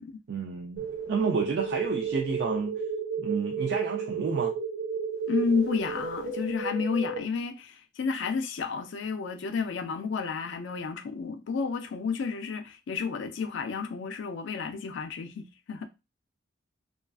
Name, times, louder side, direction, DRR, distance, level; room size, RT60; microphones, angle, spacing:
voice 1, 0.3-2.8 3.2-4.5, right 5 dB, 55° right, 0.3 m, -30 dB
sound 1, 0.8-7.2, right 5 dB, 80° right, 1.2 m, -32 dB
voice 2, 5.3-15.9, left 5 dB, 60° left, 0.3 m, -31 dB
2.4 x 2.3 x 2.3 m
head